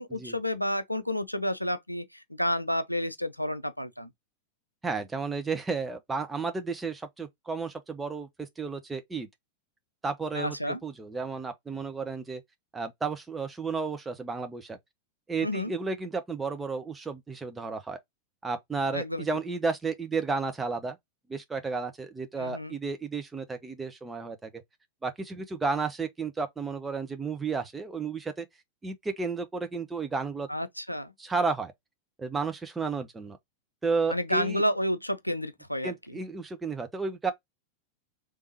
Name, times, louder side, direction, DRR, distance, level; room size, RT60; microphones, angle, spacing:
voice 1, 0.0-4.1 10.3-10.8 15.4-15.7 18.9-19.2 22.4-22.8 30.5-31.1 34.1-36.2, left 1 dB, 90° left, 0.4 m, -30 dB
voice 2, 4.8-9.3 10.0-12.4 12.7-14.8 15.3-18.0 18.4-21.0 21.3-24.6 25.0-28.5 28.8-30.5 31.2-31.7 32.2-33.4 33.8-34.6 35.8-37.3, right 4 dB, 10° right, 0.8 m, -32 dB
3.6 x 3.2 x 2.9 m
figure-of-eight pair, 90°, 0 cm